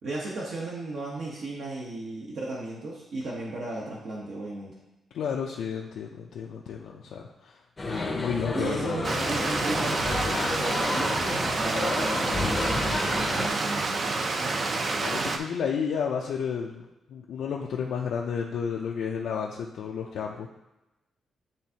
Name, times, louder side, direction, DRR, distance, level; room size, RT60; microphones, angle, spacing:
voice 1, 0.0-4.8 8.5-14.1, right 2 dB, 60° right, -4 dB, 1.0 m, -35 dB
voice 2, 5.1-7.6 7.9-9.0 14.5-20.5, left 7 dB, 80° left, -2 dB, 0.5 m, -32 dB
sound 1, 7.8-13.5, left 2 dB, 20° left, 0.6 m, -31 dB
Stream, 9.0-15.4, right 3 dB, 35° right, 0.5 m, -28 dB
10.5 x 3.4 x 2.8 m, 1.0 s
wide cardioid pair, 175°, 0 cm